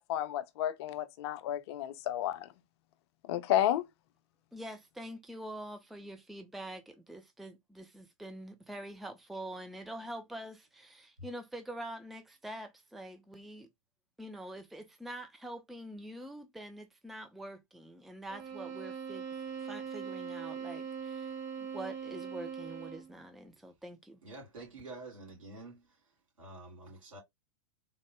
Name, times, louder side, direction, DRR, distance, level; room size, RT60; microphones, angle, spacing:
voice 1, 0.0-2.5 3.3-3.8, left 12 dB, 50° left, 0.5 m, -31 dB
voice 2, 4.5-13.7 14.2-19.3 19.6-24.2, right 1 dB, ahead, 0.4 m, -45 dB
sound 1, 18.3-23.2, right 7 dB, 25° right, 0.9 m, -41 dB
voice 3, 24.2-26.0 26.4-27.2, right 2 dB, 75° right, 2.3 m, -48 dB
3.6 x 2.0 x 3.2 m
figure-of-eight pair, 95°, 17 cm